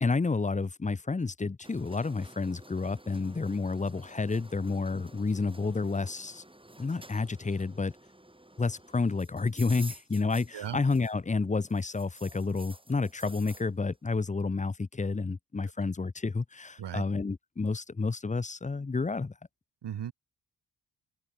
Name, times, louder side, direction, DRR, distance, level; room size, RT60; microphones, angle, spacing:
voice 1, 0.0-6.4 6.8-7.9 8.6-19.3, left 4 dB, 15° left, 0.6 m, -30 dB
sound 1, 1.6-11.3 11.6-13.7, right 1 dB, 10° right, 6.4 m, -51 dB
voice 2, 10.5-10.8 16.8-17.0 19.8-20.1, right 10 dB, 65° right, 1.2 m, -36 dB
cardioid pair, 55°, 44 cm